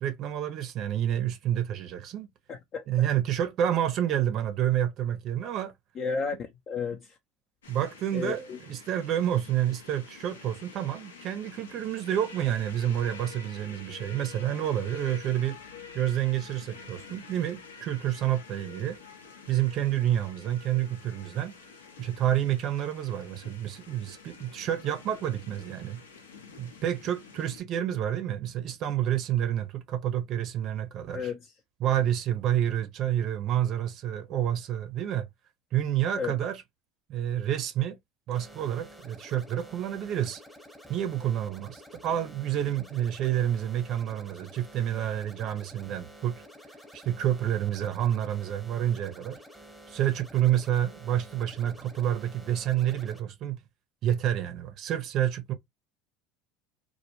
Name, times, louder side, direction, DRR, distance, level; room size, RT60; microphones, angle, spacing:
voice 1, 0.0-2.3 2.9-5.7 7.7-15.6 15.9-19.0 19.5-21.5 22.0-26.0 26.6-31.3 31.8-35.3 35.7-36.6 37.1-38.0 38.3-40.4 40.9-46.4 46.9-49.4 49.9-53.6 54.0-55.5, right 11 dB, 50° right, 0.5 m, -29 dB
voice 2, 2.5-2.8 6.0-7.2 8.1-8.6 31.1-31.5 36.2-36.4, left 5 dB, 45° left, 0.5 m, -33 dB
sound 1, 7.6-27.6, left 5 dB, 85° left, 0.6 m, -48 dB
sound 2, 38.3-53.2, equal, ahead, 0.9 m, -50 dB
2.2 x 2.1 x 2.9 m
hypercardioid pair, 85°, 0 cm